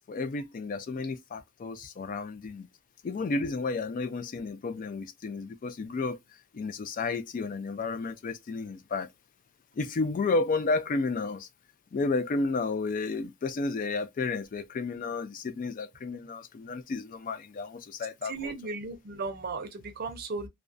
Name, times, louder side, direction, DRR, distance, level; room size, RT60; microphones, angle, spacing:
voice 1, 0.1-2.7 3.0-6.2 6.5-9.1 9.8-11.5 11.9-18.5, left 3 dB, 40° left, 0.3 m, -32 dB
voice 2, 18.2-20.5, right 4 dB, 45° right, 0.5 m, -36 dB
2.4 x 2.1 x 2.5 m
head